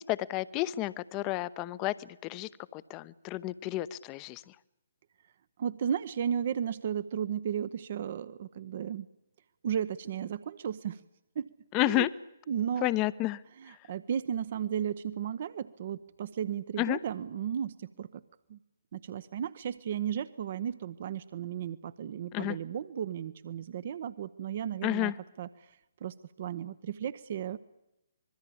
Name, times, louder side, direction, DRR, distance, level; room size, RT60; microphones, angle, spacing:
voice 1, 0.0-1.9 2.2-4.4 11.7-12.1 12.8-13.4 16.8-17.0 22.3-22.6 24.8-25.1, left 17 dB, 25° left, 17 dB, 0.9 m, -30 dB
voice 2, 5.6-9.1 9.6-11.0 11.4-11.5 11.8-12.1 12.5-12.9 13.6-18.2 18.5-18.6 18.9-25.1 25.4-25.5 26.0-27.6, right 9 dB, 45° right, 15 dB, 0.9 m, -34 dB
25.5 x 22.0 x 8.7 m, 0.87 s
figure-of-eight pair, 130°, 0 cm